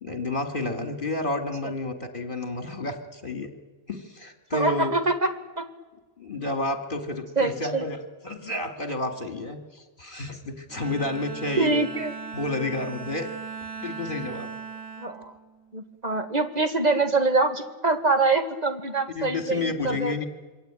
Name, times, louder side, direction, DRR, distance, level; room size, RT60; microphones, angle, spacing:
voice 1, 0.0-3.5 3.9-4.9 6.2-8.0 8.2-11.8 12.3-13.3 13.8-14.5 19.1-20.3, left 2 dB, 40° left, 5 dB, 2.6 m, -30 dB
voice 2, 4.5-5.3 5.6-5.7 7.4-7.8 11.6-12.1 15.0-15.3 15.7-20.2, right 3 dB, 35° right, 5 dB, 2.2 m, -24 dB
Bowed string instrument, 10.7-16.2, right 5 dB, 85° right, 2.8 m, -39 dB
27.0 x 23.0 x 9.1 m, 1.2 s
omnidirectional pair, 1.3 m